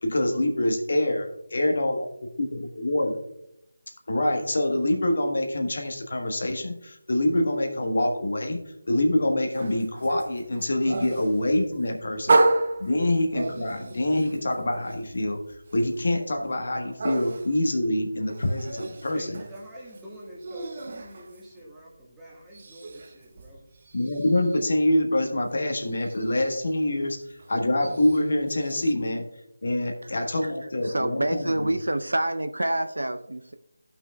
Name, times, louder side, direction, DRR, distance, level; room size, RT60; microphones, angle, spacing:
voice 1, 0.0-2.1 2.4-3.2 4.1-12.4 12.8-19.4 23.9-29.2 29.6-31.7, left 1 dB, 60° left, 4 dB, 1.4 m, -25 dB
sound 1, 9.5-22.0 22.3-28.9, right 2 dB, 40° right, 0.7 m, -32 dB
voice 2, 19.1-23.7, equal, 5° right, -8 dB, 1.6 m, -45 dB
voice 3, 30.8-33.5, right 1 dB, 80° right, 9 dB, 0.7 m, -27 dB
16.5 x 5.9 x 2.3 m, 0.80 s
figure-of-eight pair, 160°, 0 cm